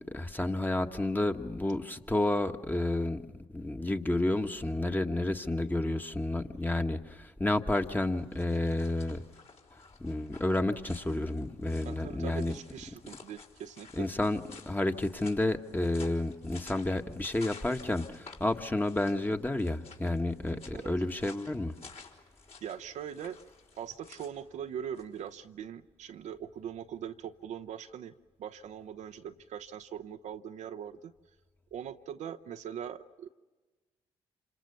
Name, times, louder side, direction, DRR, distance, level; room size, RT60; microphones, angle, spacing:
voice 1, 0.0-3.2 3.5-9.2 10.0-12.5 14.0-14.4 14.6-21.7, left 1 dB, 15° left, 6 dB, 1.6 m, -30 dB
sound 1, 7.6-25.3, left 4 dB, 55° left, 4.3 m, -53 dB
voice 2, 11.8-14.1 20.5-20.9 22.6-23.4 23.8-28.1 28.4-31.1 31.7-33.3, right 9 dB, 65° right, 9 dB, 0.9 m, -41 dB
27.5 x 26.0 x 7.0 m, 1.2 s
hypercardioid pair, 45°, 13 cm